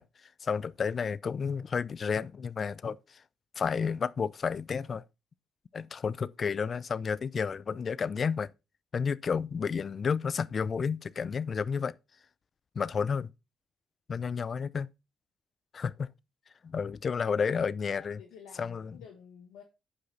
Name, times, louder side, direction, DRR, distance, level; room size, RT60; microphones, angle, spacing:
voice 1, 0.0-3.2 3.6-5.0 5.7-8.5 8.9-11.9 12.7-13.3 14.1-14.9 15.7-16.1 16.6-18.2 18.6-19.0, left 6 dB, 50° left, 0.5 m, -31 dB
voice 2, 17.9-19.6, left 7 dB, 85° left, 1.5 m, -52 dB
9.8 x 5.7 x 4.0 m
supercardioid pair, 55°, 0 cm